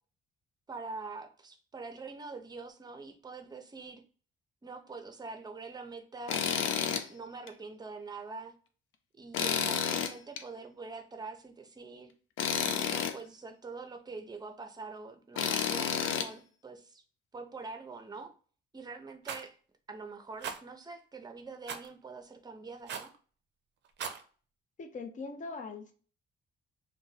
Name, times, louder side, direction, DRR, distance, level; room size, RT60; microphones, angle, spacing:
voice 1, 0.7-4.0 4.6-6.4 7.1-8.5 9.2-12.1 12.8-17.0 17.3-18.3 18.7-19.6 19.9-23.1, right 4 dB, 20° right, 6 dB, 0.6 m, -44 dB
Tools, 6.3-7.1 7.5-7.6 9.3-10.4 12.4-13.1 15.4-16.3, left 8 dB, 80° left, 0.5 m, -30 dB
Rattle, 19.2-19.5 20.4-20.6 21.7-21.9 22.9-23.2 23.8-24.2, right 7 dB, 60° right, 0.5 m, -38 dB
voice 2, 24.8-25.9, left 4 dB, 40° left, 6 dB, 0.6 m, -41 dB
2.5 x 2.2 x 3.9 m, 0.41 s
cardioid pair, 90°, 20 cm